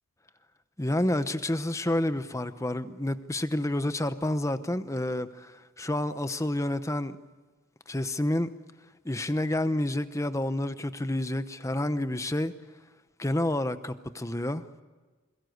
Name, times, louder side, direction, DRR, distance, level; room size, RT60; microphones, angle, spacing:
voice 1, 0.8-7.2 7.9-8.5 9.0-12.5 13.2-14.6, left 1 dB, 15° left, 0.9 m, -29 dB
28.5 x 22.0 x 8.1 m
head